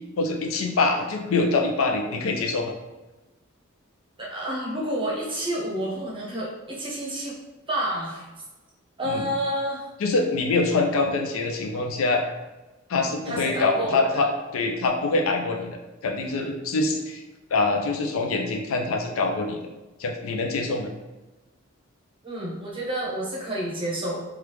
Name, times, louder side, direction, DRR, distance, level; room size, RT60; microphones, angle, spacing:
voice 1, 0.2-2.7 9.0-9.2 10.0-12.3 12.9-17.2 17.5-19.6 20.0-20.9, left 3 dB, 75° left, 3 dB, 0.4 m, -25 dB
voice 2, 4.2-7.4 7.7-8.3 9.0-9.9 13.3-14.3 22.2-24.2, right 1 dB, 25° right, -4 dB, 0.8 m, -29 dB
2.9 x 2.3 x 3.3 m, 1.1 s
head